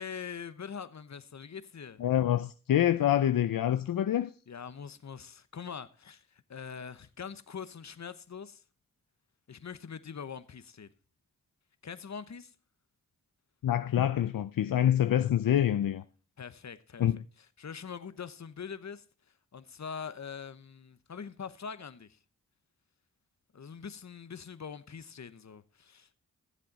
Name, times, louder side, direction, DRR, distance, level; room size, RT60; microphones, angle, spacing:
voice 1, 0.0-2.0 4.5-8.6 9.5-10.9 11.8-12.5 16.4-17.1 17.6-19.0 19.5-22.2 23.5-26.2, left 6 dB, 55° left, 0.9 m, -43 dB
voice 2, 2.0-4.3 13.6-16.0 17.0-17.2, left 11 dB, 80° left, 0.5 m, -26 dB
14.5 x 7.6 x 4.1 m
cardioid pair, 45°, 33 cm